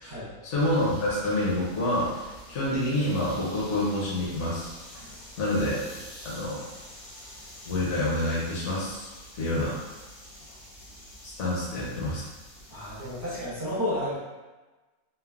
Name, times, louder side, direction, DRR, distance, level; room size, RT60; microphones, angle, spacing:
voice 1, 0.4-2.1 2.5-4.7 5.4-5.8 6.2-6.6 7.7-9.1 9.3-9.7 11.2-12.2, left 1 dB, 60° left, -6 dB, 0.9 m, -27 dB
sound 1, 0.6-13.5, equal, 80° left, 1.3 m, -47 dB
voice 2, 12.7-14.2, left 1 dB, 20° right, -11 dB, 0.7 m, -31 dB
3.3 x 2.0 x 2.3 m, 1.2 s
omnidirectional pair, 1.5 m